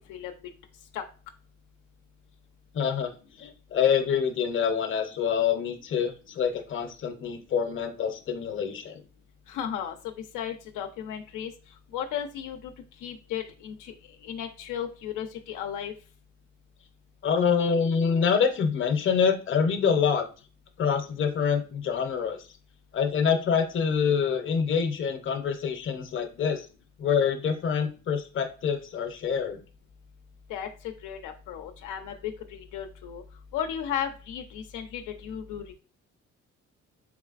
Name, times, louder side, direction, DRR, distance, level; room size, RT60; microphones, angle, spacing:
voice 1, 2.7-3.1 3.4-9.0 17.2-20.3 20.8-22.4 22.9-26.7 27.0-29.6, left 6 dB, 40° left, 7 dB, 0.7 m, -26 dB
voice 2, 9.5-11.5 11.9-12.7 13.0-13.9 14.2-15.9 30.5-33.2 33.5-35.7, left 9 dB, 85° left, 4 dB, 0.5 m, -35 dB
3.6 x 3.1 x 2.4 m, 0.35 s
cardioid pair, 90°, 30 cm